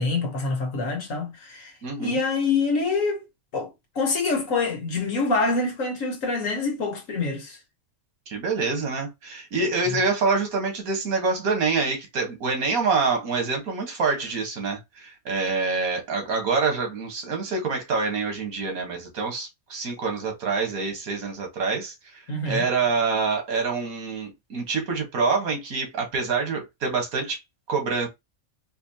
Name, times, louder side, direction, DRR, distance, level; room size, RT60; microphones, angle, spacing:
voice 1, 0.0-1.7 2.0-3.2 3.5-7.6 9.9-10.0 22.3-22.7, left 3 dB, 70° left, 1.5 m, -26 dB
voice 2, 1.8-2.2 8.3-27.4 27.7-28.1, right 4 dB, 90° right, 1.7 m, -26 dB
4.3 x 2.6 x 2.7 m
omnidirectional pair, 1.4 m